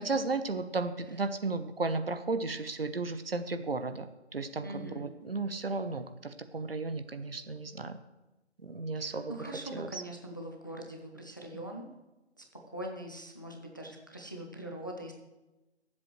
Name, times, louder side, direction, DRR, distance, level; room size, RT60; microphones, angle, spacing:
voice 1, 0.0-4.1 4.3-8.0 8.6-10.0 11.5-11.7, right 3 dB, 55° right, 9 dB, 0.9 m, -34 dB
voice 2, 4.6-5.1 9.0-11.9 12.4-12.5 12.7-15.1, right 1 dB, 20° left, 2 dB, 0.6 m, -42 dB
22.0 x 7.7 x 3.1 m, 1.0 s
figure-of-eight pair, 160°, 34 cm